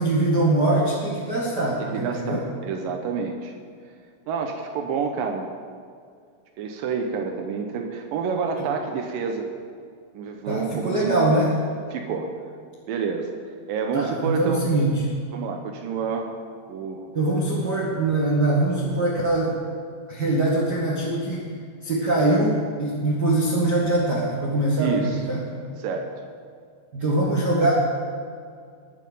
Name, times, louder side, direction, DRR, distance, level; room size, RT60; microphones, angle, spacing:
voice 1, 0.0-2.4 8.6-8.7 10.4-11.5 13.9-15.0 17.1-19.5 20.1-21.5 21.8-25.4 26.9-27.7, right 2 dB, 70° right, -4 dB, 0.9 m, -23 dB
voice 2, 1.8-3.5 4.3-5.5 6.6-9.5 10.1-11.5 11.9-12.3 12.9-13.3 13.7-14.7 15.3-16.3 16.7-17.1 24.8-25.2 25.8-26.1, right 5 dB, 90° right, 3 dB, 1.9 m, -28 dB
20.5 x 9.0 x 5.6 m, 2.2 s
omnidirectional pair, 5.4 m